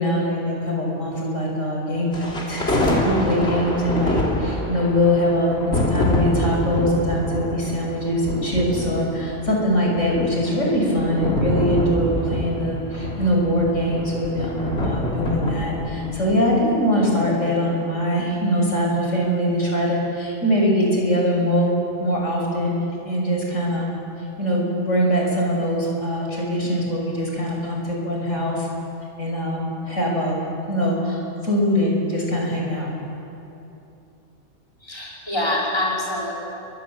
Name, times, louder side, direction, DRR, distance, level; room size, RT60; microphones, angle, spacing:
voice 1, 0.0-21.7 22.0-23.9 24.4-28.7 29.2-30.4 30.7-32.9, equal, 80° left, -2 dB, 6.4 m, -22 dB
sound 1, 2.1-16.4, left 1 dB, 55° left, 3.7 m, -26 dB
voice 2, 34.8-36.3, left 1 dB, 20° left, -4 dB, 5.4 m, -25 dB
30.0 x 24.5 x 7.8 m, 2.9 s
omnidirectional pair, 1.3 m